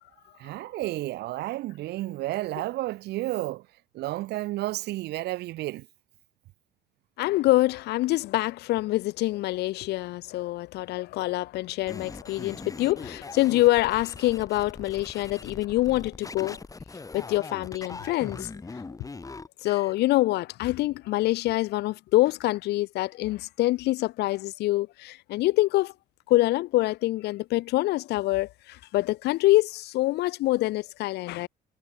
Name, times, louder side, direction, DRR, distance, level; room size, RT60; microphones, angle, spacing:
voice 1, 0.4-3.6 3.9-5.9, right 17 dB, 80° right, 2.1 m, -31 dB
voice 2, 7.2-16.6 17.1-18.5 19.6-25.9 26.3-28.5 28.9-31.5, left 17 dB, 80° left, 1.5 m, -25 dB
sound 1, 11.9-19.9, left 3 dB, 20° left, 3.8 m, -41 dB
cardioid pair, 110°, 17 cm